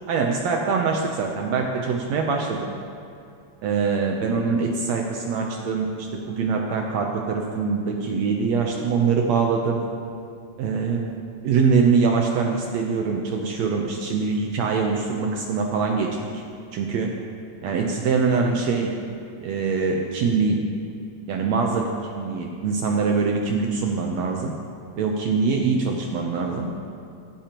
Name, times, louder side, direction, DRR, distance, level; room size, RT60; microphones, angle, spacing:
voice 1, 0.1-2.6 3.6-9.8 10.6-11.2 11.4-16.4 16.7-17.2 17.6-18.9 19.4-20.6 21.3-24.5 25.0-26.7, right 5 dB, 70° right, 1 dB, 1.9 m, -23 dB
15.5 x 15.0 x 3.0 m, 2.5 s
omnidirectional pair, 3.5 m